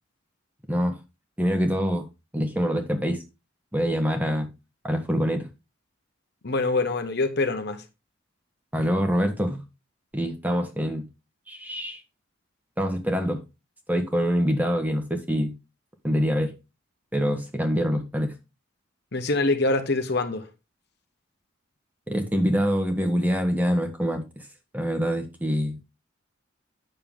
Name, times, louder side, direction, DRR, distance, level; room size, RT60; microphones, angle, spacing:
voice 1, 1.4-2.1 2.3-3.2 3.7-4.5 4.8-5.5 8.7-9.6 10.1-11.1 11.5-12.0 12.8-13.4 13.9-15.5 16.0-16.6 17.1-18.3 22.1-24.4 24.7-25.8, equal, 10° right, 1.3 m, -25 dB
voice 2, 6.4-7.8 19.1-20.5, left 2 dB, 50° left, 1.1 m, -24 dB
9.1 x 6.7 x 3.8 m
head